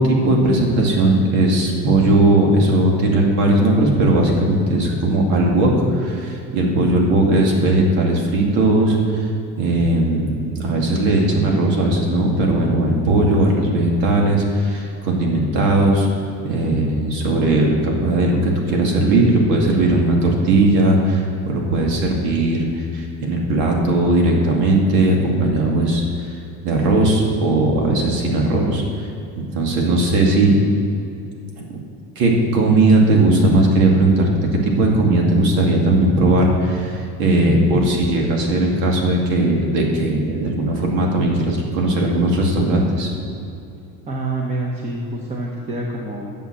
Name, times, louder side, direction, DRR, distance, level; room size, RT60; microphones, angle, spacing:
voice 1, 0.0-9.3 9.6-16.1 16.4-26.0 26.6-28.8 29.5-30.5 31.6-31.7 32.2-34.3 34.6-43.1, right 2 dB, 90° right, 0 dB, 2.4 m, -17 dB
voice 2, 44.1-46.3, right 2 dB, 25° right, -1 dB, 0.9 m, -27 dB
9.5 x 6.9 x 7.5 m, 2.7 s
cardioid pair, 175°, 29 cm